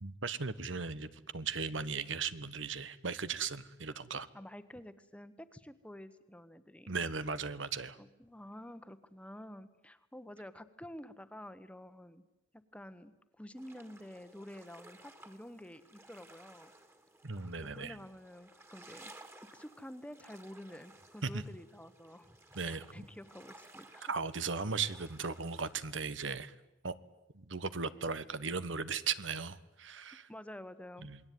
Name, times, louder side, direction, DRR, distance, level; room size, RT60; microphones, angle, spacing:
voice 1, 0.0-4.3 6.9-8.0 17.2-18.0 21.2-21.4 22.5-23.0 24.1-26.5 26.8-27.0 27.3-30.3 31.0-31.2, right 5 dB, 75° right, 14 dB, 1.2 m, -37 dB
voice 2, 4.3-6.9 8.0-12.2 12.5-16.7 17.6-19.1 19.5-22.4 22.6-24.0 30.3-31.1, left 1 dB, 5° left, 11 dB, 1.2 m, -50 dB
sound 1, 13.6-25.7, right 2 dB, 15° right, 2.1 m, -58 dB
27.5 x 21.0 x 9.4 m, 0.94 s
head